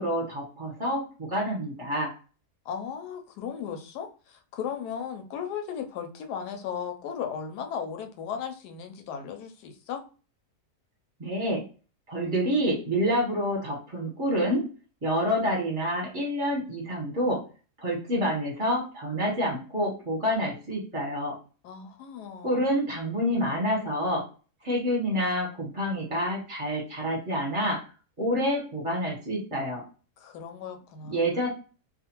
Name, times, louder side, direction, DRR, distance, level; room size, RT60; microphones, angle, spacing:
voice 1, 0.0-2.1 11.2-11.6 12.1-14.6 15.0-17.4 17.8-21.4 22.4-24.2 24.6-27.8 28.2-29.8 31.0-31.5, equal, 25° right, -3 dB, 0.8 m, -28 dB
voice 2, 2.6-10.0 21.6-22.7 30.2-31.4, left 7 dB, 90° left, 5 dB, 1.2 m, -36 dB
2.5 x 2.4 x 2.9 m, 0.36 s
omnidirectional pair, 1.7 m